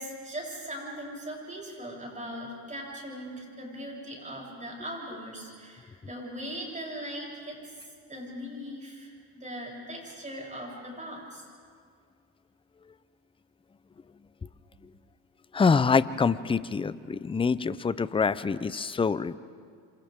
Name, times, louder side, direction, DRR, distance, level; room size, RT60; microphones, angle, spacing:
voice 1, 0.0-11.5, equal, 15° right, -2 dB, 7.9 m, -40 dB
voice 2, 15.5-19.3, left 5 dB, 15° left, 16 dB, 0.5 m, -25 dB
27.5 x 27.5 x 3.6 m, 2.1 s
supercardioid pair, 90°, 43 cm